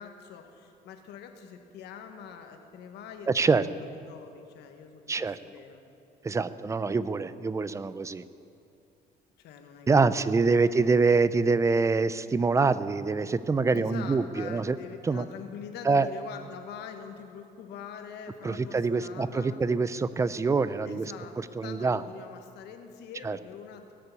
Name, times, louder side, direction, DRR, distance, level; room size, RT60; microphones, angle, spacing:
voice 1, 0.0-5.8 9.4-11.0 13.7-19.6 20.8-23.9, left 7 dB, 80° left, 6 dB, 1.4 m, -44 dB
voice 2, 3.3-3.7 5.1-5.4 6.2-8.2 9.9-14.8 15.0-15.2 15.8-16.1 18.4-22.0 23.2-23.4, right 4 dB, 20° right, 15 dB, 0.4 m, -25 dB
18.5 x 6.7 x 8.3 m, 2.7 s
cardioid pair, 110°, 17 cm